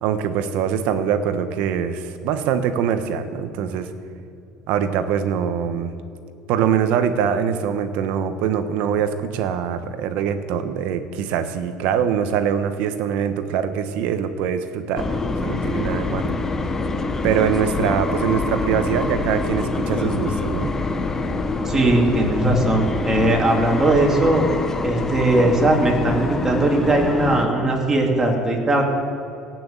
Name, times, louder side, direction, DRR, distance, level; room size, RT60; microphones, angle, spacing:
voice 1, 0.0-3.9 4.7-5.9 6.5-15.2 15.4-16.3 17.2-20.7, right 8 dB, 70° right, 9 dB, 1.1 m, -23 dB
sound 1, 15.0-27.5, left 3 dB, 20° left, 0.9 m, -25 dB
voice 2, 21.6-24.5 24.8-28.8, right 2 dB, 20° right, 0 dB, 2.8 m, -19 dB
17.5 x 6.2 x 8.0 m, 2.7 s
supercardioid pair, 110°, 2 cm